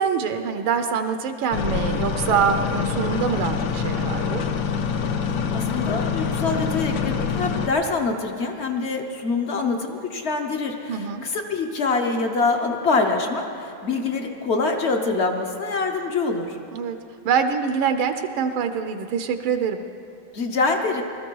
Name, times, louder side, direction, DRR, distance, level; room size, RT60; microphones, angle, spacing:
voice 1, 0.0-4.4 10.9-11.2 16.7-17.0 17.2-19.8, right 7 dB, 80° right, 8 dB, 1.5 m, -24 dB
sound 1, 1.5-7.7, left 6 dB, 70° left, 1.5 m, -25 dB
voice 2, 5.5-16.6 20.3-21.0, left 3 dB, 50° left, 4 dB, 0.8 m, -25 dB
20.0 x 13.5 x 4.6 m, 2.5 s
omnidirectional pair, 2.3 m